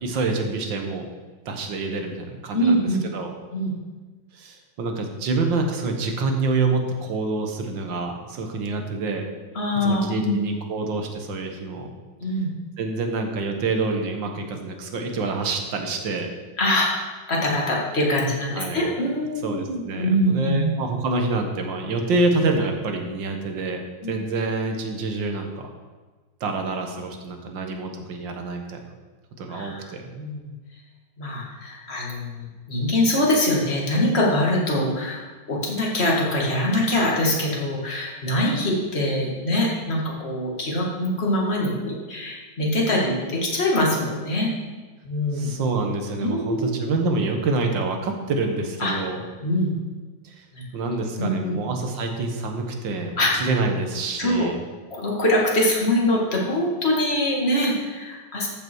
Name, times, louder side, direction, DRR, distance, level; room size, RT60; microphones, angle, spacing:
voice 1, 0.0-1.1 1.5-3.3 4.3-9.2 9.8-11.9 12.8-16.3 18.6-18.9 19.4-25.7 26.4-28.8 29.4-30.0 45.3-49.2 50.2-50.5 50.7-54.6, right 3 dB, 80° right, 3 dB, 1.9 m, -27 dB
voice 2, 2.5-3.0 3.5-3.7 9.5-10.4 12.2-12.5 16.6-20.7 24.0-24.2 29.5-30.4 31.2-35.2 35.5-44.5 45.0-45.5 46.2-46.8 48.8-48.9 49.4-49.7 50.5-50.6 51.2-51.6 53.2-53.5 54.2-54.5 54.9-58.5, left 1 dB, 35° left, -3 dB, 2.3 m, -23 dB
14.0 x 5.9 x 4.6 m, 1.3 s
omnidirectional pair, 2.0 m